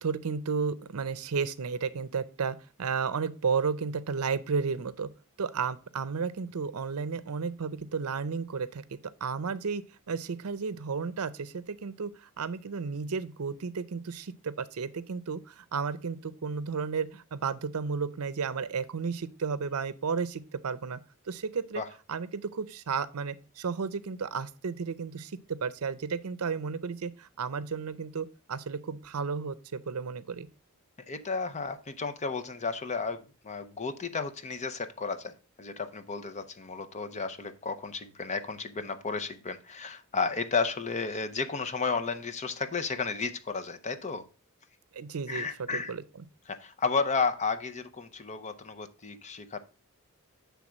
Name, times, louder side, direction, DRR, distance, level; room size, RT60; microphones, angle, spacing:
voice 1, 0.0-5.1 5.4-8.8 9.2-12.1 12.4-21.0 21.3-21.8 22.1-30.5 44.9-46.0, right 5 dB, 80° right, 15 dB, 0.6 m, -33 dB
voice 2, 31.1-35.3 35.6-44.2 45.3-45.9 46.5-49.6, left 4 dB, 30° left, 10 dB, 0.6 m, -33 dB
7.2 x 3.4 x 6.2 m, 0.35 s
head